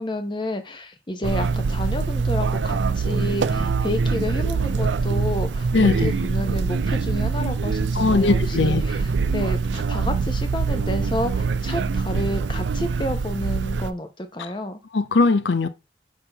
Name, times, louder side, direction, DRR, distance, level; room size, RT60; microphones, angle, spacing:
voice 1, 0.0-5.7 6.0-14.8, left 1 dB, 25° left, 0.9 m, -30 dB
sound 1, 1.2-13.9, right 4 dB, 80° right, 0.5 m, -24 dB
voice 2, 5.7-6.1 8.0-8.8 14.4-14.5 14.9-15.7, left 3 dB, 80° left, 0.6 m, -19 dB
5.9 x 5.7 x 3.4 m
head